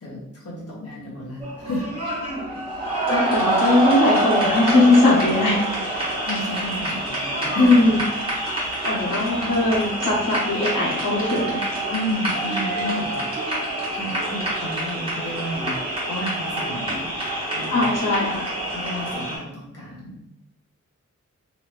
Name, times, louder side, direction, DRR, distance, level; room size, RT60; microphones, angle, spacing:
voice 1, 0.0-1.9 6.2-7.9 8.6-9.0 11.9-13.3 13.9-16.9 17.6-17.9 18.7-20.2, equal, 50° left, -5 dB, 1.3 m, -32 dB
sound 1, 1.4-19.4, right 1 dB, 15° right, 1.3 m, -26 dB
voice 2, 3.1-5.6 7.6-8.0 8.8-11.6 17.7-18.4, left 2 dB, 85° left, -7 dB, 1.2 m, -19 dB
3.0 x 2.8 x 3.1 m, 0.84 s
wide cardioid pair, 135°, 31 cm